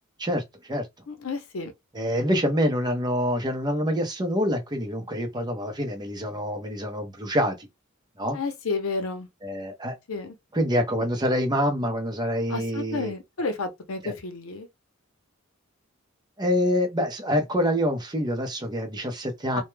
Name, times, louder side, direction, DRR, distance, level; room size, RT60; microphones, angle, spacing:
voice 1, 0.2-0.9 1.9-7.7 8.2-8.4 9.4-9.9 10.5-13.1 14.0-14.1 16.4-19.6, equal, 20° right, 0.6 m, -26 dB
voice 2, 1.1-1.7 8.3-9.3 10.1-10.3 12.5-14.7 19.6-19.7, left 3 dB, 85° left, 0.7 m, -31 dB
2.2 x 2.1 x 3.1 m
head